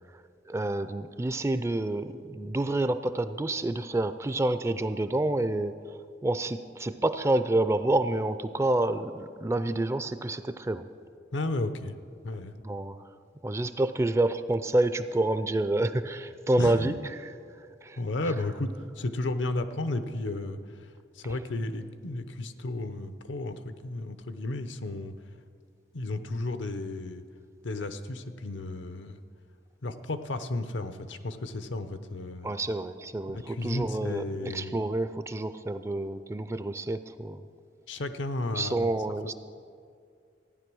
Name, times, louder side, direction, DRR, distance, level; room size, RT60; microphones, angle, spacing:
voice 1, 0.1-10.9 12.6-13.0 13.4-18.0 32.4-37.4 38.5-39.3, right 2 dB, 15° right, 11 dB, 0.4 m, -28 dB
voice 2, 11.3-11.9 12.2-12.5 16.6-16.9 18.0-18.7 19.0-20.6 21.2-25.1 25.9-27.2 27.6-29.2 29.8-32.5 33.5-34.8 37.9-38.7, left 2 dB, 80° left, 10 dB, 0.7 m, -33 dB
15.0 x 9.7 x 6.2 m, 2.3 s
head